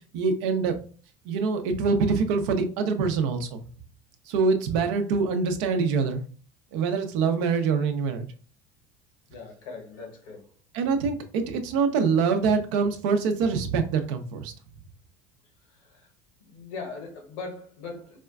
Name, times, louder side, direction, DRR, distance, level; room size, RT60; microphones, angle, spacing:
voice 1, 0.1-0.8 1.3-3.6 4.3-6.2 6.7-8.2 10.7-14.5, right 5 dB, 70° right, 7 dB, 0.6 m, -25 dB
voice 2, 9.3-10.5 15.6-16.1 16.4-18.2, left 4 dB, 70° left, 3 dB, 1.1 m, -40 dB
4.3 x 2.3 x 2.3 m, 0.40 s
hypercardioid pair, 80°, 17 cm